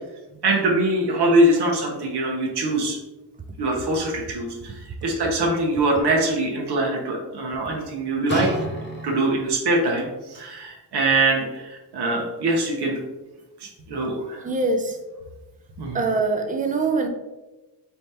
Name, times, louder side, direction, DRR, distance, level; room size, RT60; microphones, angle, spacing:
voice 1, 0.4-3.0 3.6-4.7 5.0-8.5 9.0-13.0 13.6-14.4 15.8-16.0, right 2 dB, 70° right, 0 dB, 0.8 m, -23 dB
sound 1, 8.3-9.6 10.3-10.4, equal, 25° left, 0.7 m, -30 dB
voice 2, 14.4-15.0 15.9-17.1, right 3 dB, 20° right, 4 dB, 0.4 m, -23 dB
4.4 x 2.8 x 3.4 m, 1.1 s
wide cardioid pair, 160°, 41 cm